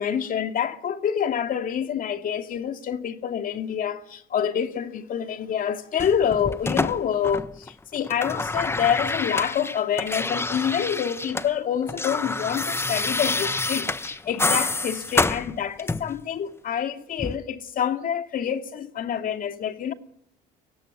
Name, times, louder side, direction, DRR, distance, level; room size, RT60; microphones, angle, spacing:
voice 1, 0.0-19.9, left 8 dB, 55° left, 2.4 m, -27 dB
sound 1, 6.0-7.7 8.0-11.5 11.8-16.2 17.2-17.4, left 3 dB, 15° left, 1.0 m, -27 dB
24.0 x 17.5 x 9.9 m
supercardioid pair, 85°, 17 cm